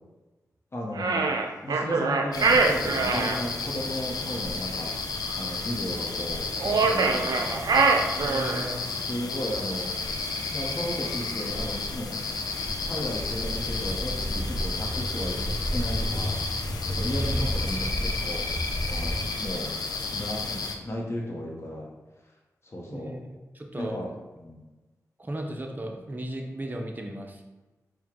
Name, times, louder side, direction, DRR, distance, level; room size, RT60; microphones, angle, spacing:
voice 1, 0.7-1.3 1.6-7.6 8.9-9.9 10.5-12.2 12.9-16.4 16.9-18.6 18.8-19.7 20.1-21.9 22.6-23.2 23.8-24.1 24.4-24.6, equal, 40° left, -2 dB, 0.9 m, -35 dB
sound 1, 1.0-3.4 6.6-8.7, right 4 dB, 80° right, 0.4 m, -23 dB
sound 2, 2.3-20.8, left 4 dB, 80° left, 0.4 m, -32 dB
voice 2, 8.2-8.8 17.1-17.5 22.9-23.2 23.5-24.0 25.2-27.4, right 1 dB, 30° right, 1 dB, 0.7 m, -35 dB
Walk footsteps, 11.5-19.2, equal, 15° left, 1.1 m, -32 dB
4.5 x 2.2 x 3.6 m, 1.1 s
cardioid pair, 45°, 7 cm